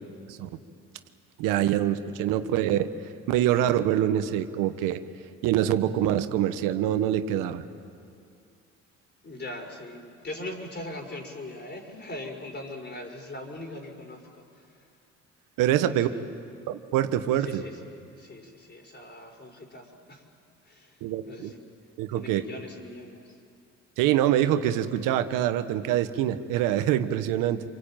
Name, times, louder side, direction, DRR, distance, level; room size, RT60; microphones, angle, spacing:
voice 1, 1.4-2.9 3.3-5.0 5.4-7.6 15.6-16.1 16.7-17.6 21.0-21.5 22.0-22.4 24.0-27.6, right 11 dB, 85° right, 10 dB, 1.3 m, -25 dB
voice 2, 9.2-14.8 15.8-16.2 17.4-20.2 20.6-21.6 22.1-23.4, left 1 dB, 35° left, 3 dB, 5.6 m, -41 dB
27.0 x 23.5 x 9.0 m, 2.4 s
supercardioid pair, 75°, 32 cm